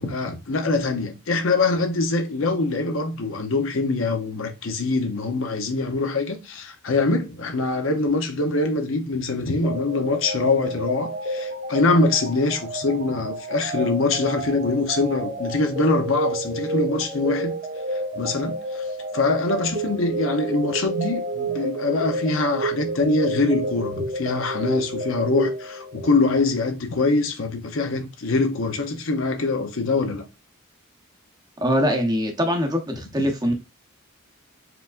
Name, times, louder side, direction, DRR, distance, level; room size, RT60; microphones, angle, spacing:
voice 1, 0.0-17.5 18.1-18.9 19.1-30.2, left 3 dB, 70° left, 0.7 m, -23 dB
sound 1, 9.6-26.2, right 1 dB, 45° right, 1.2 m, -30 dB
voice 2, 31.6-33.5, equal, 20° right, 0.8 m, -22 dB
4.8 x 3.5 x 2.5 m
head